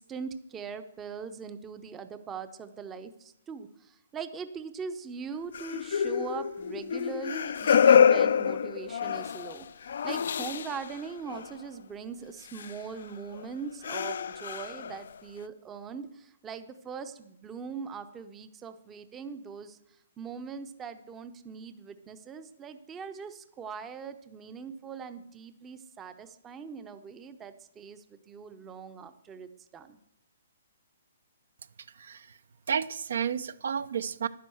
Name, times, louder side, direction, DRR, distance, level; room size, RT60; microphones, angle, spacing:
voice 1, 0.0-9.7 10.0-19.8 20.2-30.0, right 5 dB, 10° right, 10 dB, 0.7 m, -41 dB
Kombi Pain Mix, 5.5-11.0 11.3-11.5 12.6-12.7 13.3-13.5 13.8-15.2, left 7 dB, 60° left, 0.4 m, -26 dB
voice 2, 31.9-32.4 32.7-34.3, right 7 dB, 65° right, 15 dB, 0.6 m, -31 dB
10.5 x 10.0 x 7.8 m, 0.78 s
hypercardioid pair, 165°, 0 cm